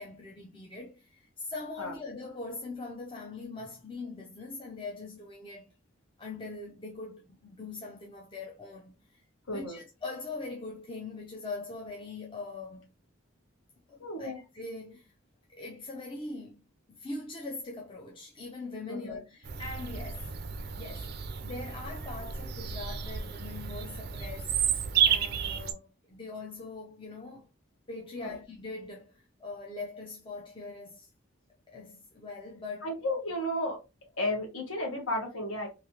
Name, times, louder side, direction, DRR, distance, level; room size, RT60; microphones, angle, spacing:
voice 1, 0.0-5.7 6.2-12.9 13.9-15.1 15.5-20.4 20.8-21.1 21.4-27.5 27.9-31.1 31.7-32.9, left 3 dB, 25° left, 0.4 m, -42 dB
voice 2, 9.5-9.8 14.0-14.4 18.9-19.2 28.2-28.4 32.8-33.8 34.2-35.7, left 1 dB, 80° left, 1.2 m, -33 dB
Bird vocalization bird call bird song, 19.4-25.7, right 8 dB, 50° right, 0.4 m, -32 dB
3.1 x 2.8 x 2.7 m
head